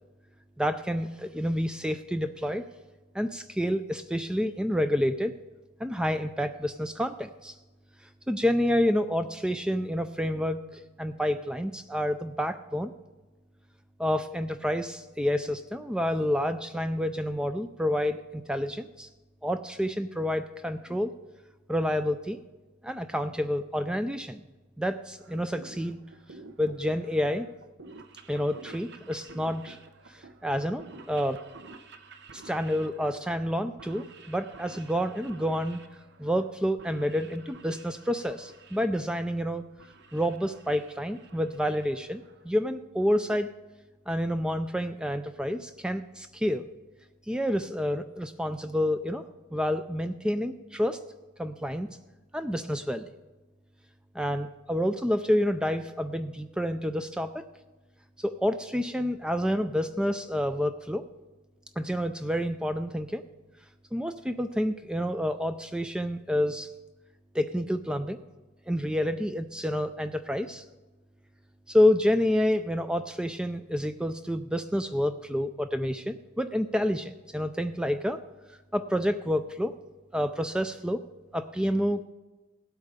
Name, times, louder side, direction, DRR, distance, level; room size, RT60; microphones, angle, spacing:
voice 1, 0.6-2.7 3.1-5.4 5.8-7.6 8.3-12.9 14.0-19.1 19.4-21.1 21.7-22.4 22.8-24.4 24.8-26.0 26.6-27.5 28.3-29.8 30.1-30.8 31.1-31.4 32.3-35.8 36.2-39.7 40.1-43.5 44.1-46.7 47.3-49.2 49.5-51.0 51.4-51.9 52.3-53.1 54.1-57.4 58.2-61.0 61.8-63.2 63.9-66.7 67.3-68.2 68.7-70.6 71.7-78.2 78.7-79.8 80.1-81.0 81.3-82.0, equal, 5° right, 9 dB, 0.3 m, -28 dB
sound 1, 25.2-42.6, right 3 dB, 55° right, 0.8 m, -51 dB
17.5 x 8.2 x 5.0 m, 1.2 s
head